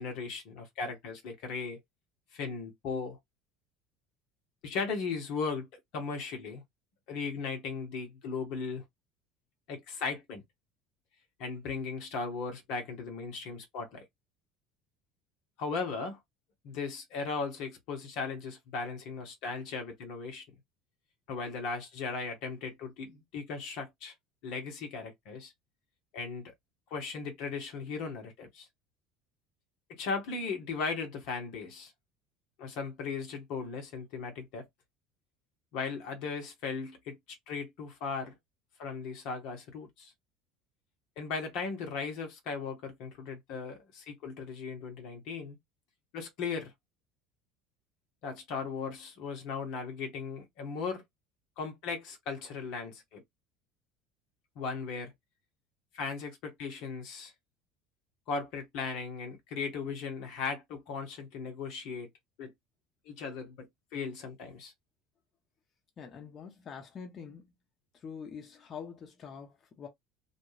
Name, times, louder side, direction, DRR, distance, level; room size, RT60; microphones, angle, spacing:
voice 1, 0.0-1.8 2.3-3.2 4.6-5.7 5.9-6.6 7.1-8.8 9.7-10.4 11.4-14.0 15.6-16.2 16.6-20.4 21.3-24.1 24.4-25.5 26.1-26.5 26.9-28.7 29.9-31.9 32.6-34.7 35.7-37.2 37.5-38.3 38.8-40.1 41.2-45.6 46.1-46.7 48.2-51.0 51.6-53.2 54.5-55.1 55.9-57.3 58.3-62.1 62.4-62.5 63.0-64.7, left 5 dB, 60° left, 1.1 m, -37 dB
voice 2, 66.0-67.5 67.9-69.9, left 6 dB, 35° left, 1.0 m, -45 dB
2.4 x 2.2 x 3.2 m
figure-of-eight pair, 70°, 0 cm